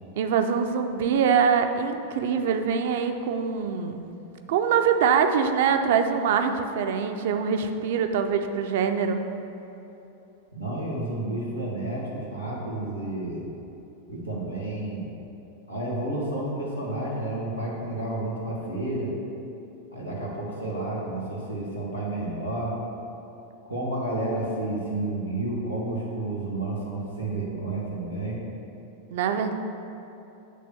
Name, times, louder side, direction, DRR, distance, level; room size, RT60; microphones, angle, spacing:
voice 1, 0.2-4.0 4.5-9.2 29.1-29.5, right 6 dB, 55° right, 7 dB, 0.5 m, -24 dB
voice 2, 10.5-13.4 14.1-15.1 15.7-19.2 19.9-22.7 23.6-28.4, right 2 dB, 85° left, -5 dB, 1.6 m, -31 dB
8.4 x 3.4 x 6.6 m, 2.9 s
figure-of-eight pair, 90°, 0 cm